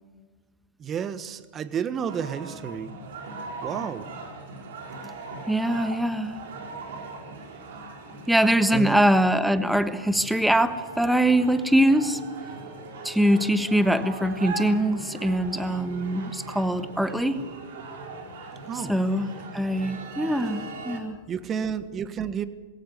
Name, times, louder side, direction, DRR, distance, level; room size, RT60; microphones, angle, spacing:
voice 1, 0.8-3.0 3.6-4.1 8.7-9.0 18.7-19.0 21.3-22.4, right 8 dB, 25° right, 13 dB, 1.4 m, -31 dB
sound 1, 2.1-21.0, right 3 dB, 70° right, 4.3 m, -40 dB
voice 2, 5.5-6.4 8.3-12.2 13.0-17.4 18.9-21.1, right 1 dB, ahead, 11 dB, 1.3 m, -23 dB
21.0 x 17.0 x 8.3 m, 1.4 s
hypercardioid pair, 110°, 0 cm